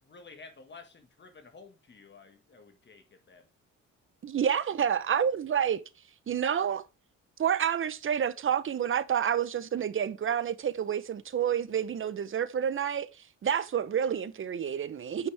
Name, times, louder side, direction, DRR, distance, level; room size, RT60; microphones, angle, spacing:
voice 1, 0.0-3.5, left 4 dB, 35° left, 1.7 m, -52 dB
voice 2, 4.2-5.8 6.3-6.8 7.4-13.1 13.4-15.3, right 8 dB, 45° right, 0.8 m, -29 dB
9.1 x 5.9 x 3.4 m
cardioid pair, 90°, 30 cm